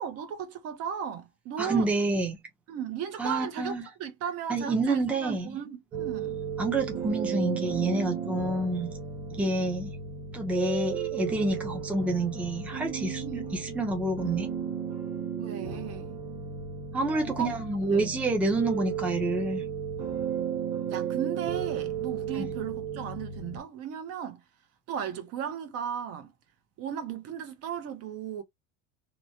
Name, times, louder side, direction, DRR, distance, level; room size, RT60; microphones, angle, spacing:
voice 1, 0.0-1.9 2.7-6.4 13.2-13.5 15.4-16.2 17.3-17.5 17.8-18.2 20.9-24.4 24.9-26.3 26.8-28.4, right 8 dB, 45° right, 0.7 m, -36 dB
voice 2, 1.6-2.4 3.2-3.8 4.5-5.6 6.6-8.9 9.3-9.9 10.3-14.5 16.9-19.6 22.3-22.5, right 2 dB, 5° right, 0.6 m, -28 dB
sound 1, 5.9-23.6, right 7 dB, 20° right, 1.0 m, -34 dB
2.9 x 2.1 x 2.8 m
supercardioid pair, 145°, 35 cm